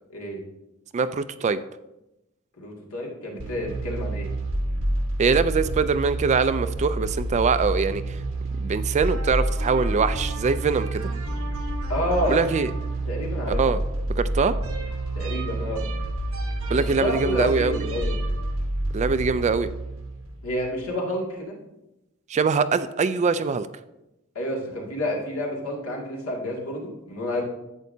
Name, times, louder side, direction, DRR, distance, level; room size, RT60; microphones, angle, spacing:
voice 1, 0.1-0.4 2.6-4.3 11.9-12.4 13.1-13.6 15.1-15.8 16.7-18.2 20.4-21.5 24.3-27.4, left 1 dB, 75° left, -2 dB, 2.2 m, -29 dB
voice 2, 0.9-1.6 5.2-8.0 8.6-11.1 12.3-12.7 13.5-13.8 14.2-14.6 16.7-17.9 18.9-19.7 22.3-23.7, right 5 dB, 30° right, 12 dB, 0.3 m, -23 dB
sound 1, 3.4-20.7, right 1 dB, 70° right, 1.2 m, -28 dB
11.0 x 8.3 x 2.7 m, 0.93 s
head